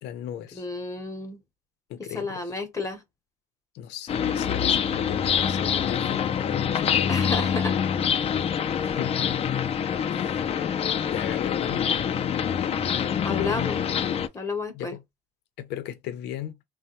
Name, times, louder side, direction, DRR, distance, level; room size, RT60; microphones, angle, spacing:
voice 1, 0.0-0.6 1.9-2.5 3.7-7.3 8.8-9.4 10.1-11.8 14.7-15.0 15.6-16.6, left 11 dB, 85° left, 0.7 m, -37 dB
voice 2, 0.5-1.4 2.1-3.0 7.1-7.8 13.2-13.8 14.3-15.0, left 4 dB, 20° left, 0.7 m, -31 dB
sound 1, 4.1-14.3, left 8 dB, 35° left, 0.4 m, -25 dB
3.3 x 2.2 x 2.8 m
cardioid pair, 110°, 17 cm